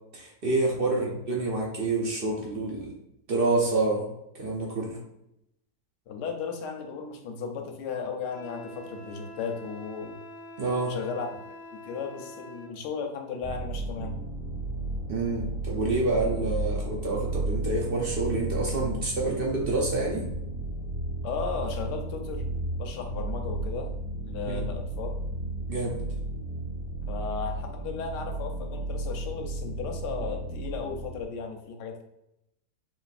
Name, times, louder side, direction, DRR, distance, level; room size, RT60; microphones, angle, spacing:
voice 1, 0.1-2.9 3.3-4.1 4.3-5.0 10.6-10.9 15.1-20.2 24.5-24.7 25.7-26.0, right 2 dB, 65° right, -2 dB, 0.5 m, -28 dB
voice 2, 6.1-10.2 10.9-14.1 21.2-22.5 22.8-23.9 24.2-25.1 27.1-32.0, left 5 dB, 85° left, 3 dB, 1.3 m, -35 dB
Wind instrument woodwind instrument, 8.3-12.8, left 1 dB, 70° left, 1.0 m, -45 dB
sound 1, 13.4-31.2, right 2 dB, 5° right, 0.6 m, -33 dB
3.9 x 3.7 x 2.5 m, 0.83 s
omnidirectional pair, 1.8 m